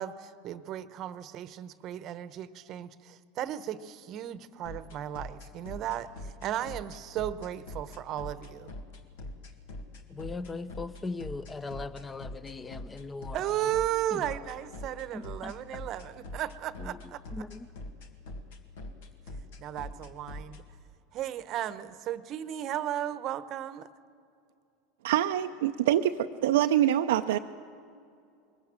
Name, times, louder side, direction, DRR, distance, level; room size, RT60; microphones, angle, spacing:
voice 1, 0.0-8.7 13.3-17.2 19.6-20.6 21.1-23.9, right 12 dB, 45° right, 14 dB, 0.9 m, -35 dB
sound 1, 4.6-20.6, left 1 dB, 75° left, 1.9 m, -42 dB
voice 2, 10.1-13.5 14.1-14.2 15.1-15.5 16.8-17.7, left 3 dB, 15° left, 16 dB, 0.7 m, -39 dB
voice 3, 25.0-27.4, right 12 dB, 80° right, 4 dB, 0.5 m, -25 dB
21.5 x 15.0 x 8.8 m, 2.5 s
hypercardioid pair, 105°, 0 cm